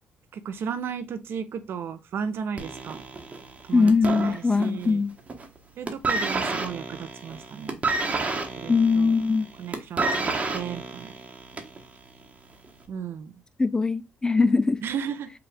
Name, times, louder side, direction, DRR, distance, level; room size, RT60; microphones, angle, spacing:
voice 1, 0.3-3.0 3.7-5.0 5.8-7.8 8.6-9.1 9.6-11.1 12.9-13.3 14.8-15.3, right 7 dB, 65° right, 0.6 m, -34 dB
sound 1, 2.6-4.9 5.2-5.6 5.9-11.8 12.6-12.7, right 3 dB, 35° right, 1.1 m, -29 dB
voice 2, 3.7-5.2 8.7-9.5 13.6-14.8, left 4 dB, 20° left, 0.4 m, -21 dB
4.8 x 2.5 x 3.3 m
cardioid pair, 75°, 4 cm